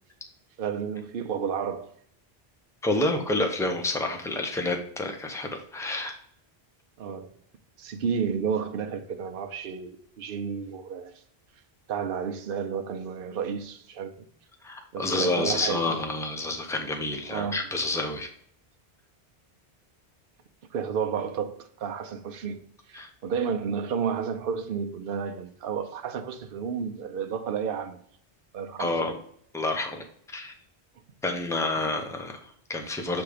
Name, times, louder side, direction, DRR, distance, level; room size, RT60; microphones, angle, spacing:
voice 1, 0.6-1.9 7.0-7.3 7.8-11.2 11.9-14.3 14.9-16.0 17.3-17.6 20.7-22.6 22.9-28.0 28.5-29.1, right 6 dB, 60° right, 0.9 m, -31 dB
voice 2, 2.8-6.1 14.6-18.3 22.9-23.1 28.8-29.2 29.5-30.5 31.2-33.2, left 2 dB, 5° left, 0.8 m, -29 dB
6.8 x 3.5 x 4.9 m
omnidirectional pair, 1.1 m